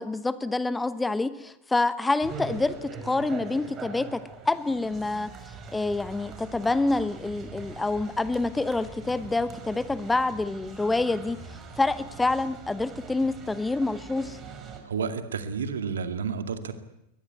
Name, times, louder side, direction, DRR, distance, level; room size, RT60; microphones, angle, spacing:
voice 1, 0.0-5.3 5.7-11.4 11.8-14.4, left 2 dB, 10° left, 15 dB, 1.0 m, -27 dB
sound 1, 2.2-14.8, right 4 dB, 25° right, 5.5 m, -42 dB
voice 2, 14.8-16.7, right 6 dB, 65° right, 9 dB, 2.4 m, -30 dB
22.0 x 20.5 x 9.7 m, 0.84 s
figure-of-eight pair, 90°, 0 cm